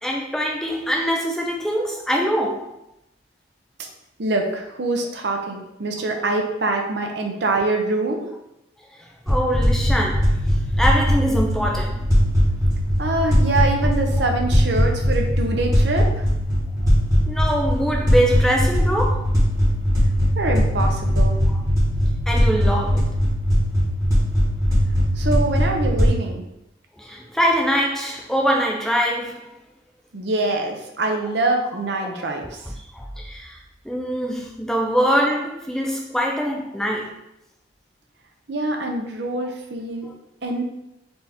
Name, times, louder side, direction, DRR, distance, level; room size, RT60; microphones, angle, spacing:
voice 1, 0.0-2.8 9.3-10.3 10.7-12.0 17.3-19.3 21.5-21.6 22.3-23.1 27.0-29.5 32.0-32.3 32.9-33.6 33.9-37.1 40.0-40.1, equal, ahead, -1 dB, 0.3 m, -23 dB
voice 2, 4.2-8.3 13.0-16.2 20.3-21.4 25.2-26.4 30.1-32.6 38.5-40.1 40.4-40.6, right 2 dB, 60° right, 3 dB, 0.6 m, -24 dB
sound 1, 9.3-26.1, equal, 20° right, 1.3 m, -20 dB
4.3 x 2.8 x 3.5 m, 0.85 s
head